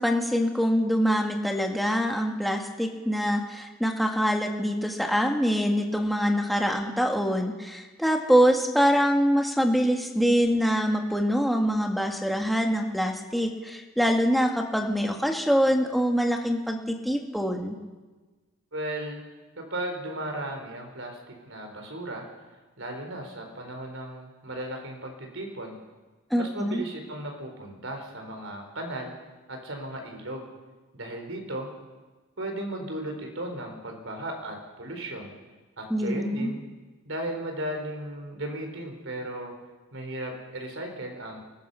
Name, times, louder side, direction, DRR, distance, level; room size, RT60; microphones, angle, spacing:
voice 1, 0.0-17.8 26.3-26.8 35.9-36.5, equal, ahead, 2 dB, 1.8 m, -24 dB
voice 2, 18.7-19.2 19.6-22.3 22.8-25.8 26.4-29.1 29.5-30.4 30.9-31.7 32.4-35.3 35.8-36.6 37.0-39.5 39.9-41.4, right 1 dB, 70° right, 3 dB, 4.6 m, -36 dB
23.5 x 20.0 x 5.8 m, 1.3 s
head